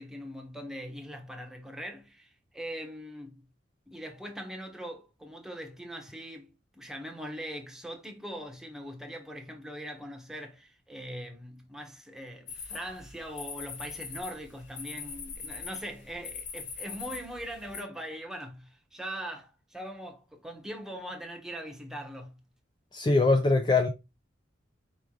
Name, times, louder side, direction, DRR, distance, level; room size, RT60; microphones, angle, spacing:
voice 1, 0.0-3.4 3.9-6.5 6.7-22.4, equal, 5° right, 0.9 m, -41 dB
sound 1, 12.5-17.8, left 5 dB, 75° left, 1.3 m, -42 dB
voice 2, 22.9-23.9, left 3 dB, 25° left, 0.4 m, -22 dB
4.8 x 3.1 x 3.6 m
head